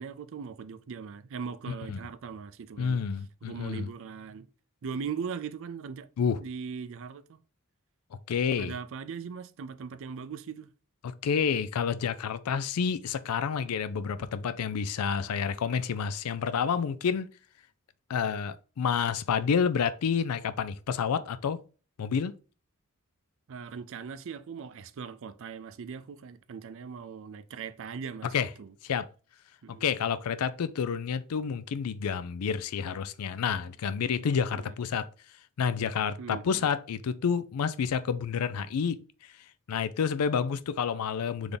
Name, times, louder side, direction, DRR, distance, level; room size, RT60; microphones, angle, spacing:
voice 1, 0.0-3.0 3.4-4.5 4.8-6.1 6.4-7.4 8.6-10.7 23.5-28.3 28.6-28.7 29.6-29.9 34.5-34.7 36.2-36.7, right 6 dB, 60° right, 0.4 m, -39 dB
voice 2, 2.8-3.9 6.2-6.4 8.3-8.8 11.0-17.3 18.1-21.6 22.0-22.3 28.3-28.5 28.8-29.1 29.7-35.1 35.6-39.0 39.7-41.6, left 6 dB, 90° left, 0.4 m, -29 dB
3.6 x 3.4 x 3.9 m
head